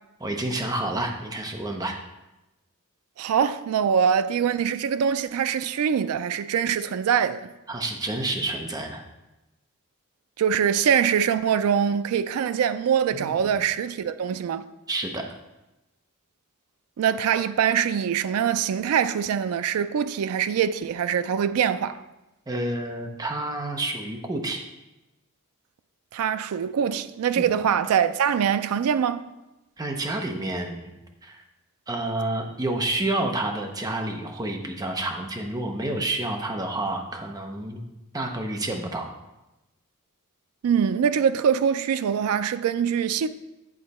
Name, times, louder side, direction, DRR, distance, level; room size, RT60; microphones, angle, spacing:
voice 1, 0.2-2.0 7.7-9.0 13.1-13.5 14.9-15.2 22.5-24.6 27.4-27.5 29.8-30.9 31.2-31.4 31.9-37.9 38.1-39.1, right 2 dB, 15° right, 0.7 m, -29 dB
voice 2, 3.2-7.5 10.4-14.7 17.0-22.0 26.1-29.2 40.6-43.3, right 8 dB, 75° right, 0.3 m, -23 dB
8.6 x 3.9 x 4.1 m
head